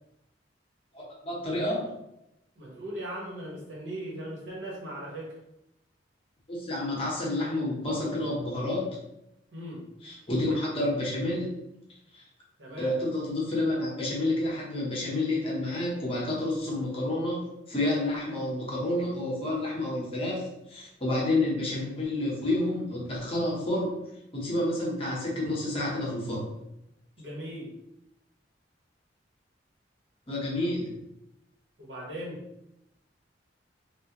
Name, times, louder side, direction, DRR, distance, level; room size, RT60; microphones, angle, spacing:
voice 1, 0.9-2.0 6.5-9.0 10.0-11.5 12.1-12.2 12.8-17.4 17.7-23.9 24.3-26.5 30.3-31.0, left 1 dB, 30° left, -4 dB, 0.9 m, -29 dB
voice 2, 2.5-5.4 9.5-9.8 12.6-13.0 27.2-27.7 31.8-32.4, right 1 dB, 75° right, -4 dB, 1.2 m, -38 dB
3.6 x 2.5 x 2.9 m, 0.85 s
head